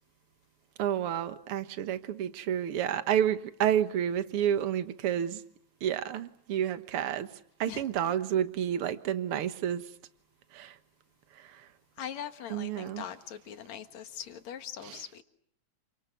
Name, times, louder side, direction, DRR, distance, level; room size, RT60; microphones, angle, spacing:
voice 1, 0.8-5.4 5.8-7.3 7.6-9.8 10.5-10.7 12.5-13.0 14.9-15.0, right 10 dB, 55° right, 2.0 m, -30 dB
voice 2, 7.7-8.1 12.0-15.2, left 9 dB, 70° left, 2.8 m, -41 dB
28.5 x 25.0 x 8.0 m
omnidirectional pair, 3.4 m